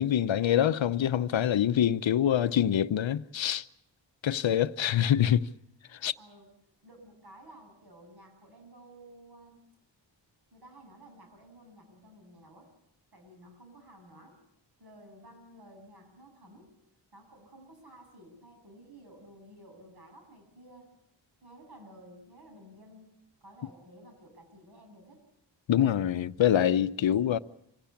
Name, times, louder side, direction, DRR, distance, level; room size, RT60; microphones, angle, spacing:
voice 1, 0.0-3.6 4.2-5.5 6.0-6.1 25.7-27.4, left 10 dB, 80° left, 0.8 m, -25 dB
voice 2, 6.2-6.5 6.8-9.6 10.5-12.7 13.1-14.4 14.8-16.7 17.1-20.9 21.4-23.1 23.4-25.2, right 1 dB, 55° right, 7.7 m, -53 dB
26.0 x 16.5 x 8.4 m
wide cardioid pair, 110°, 45 cm